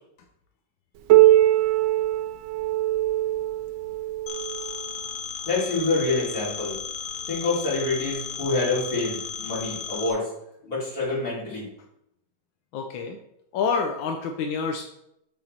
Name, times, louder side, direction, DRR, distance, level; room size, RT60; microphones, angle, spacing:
Piano, 1.1-6.4 7.3-7.4 7.9-8.0 8.8-8.9 9.9-10.0, right 15 dB, 75° right, 1.1 m, -22 dB
Telephone, 4.3-10.1, left 7 dB, 70° left, 0.7 m, -35 dB
voice 1, 5.5-6.7 7.3-10.3 10.7-11.6, left 3 dB, 45° left, -7 dB, 3.5 m, -26 dB
voice 2, 12.7-13.2 13.5-14.8, left 5 dB, 85° left, 4 dB, 1.5 m, -27 dB
7.8 x 4.8 x 4.3 m, 0.79 s
omnidirectional pair, 2.1 m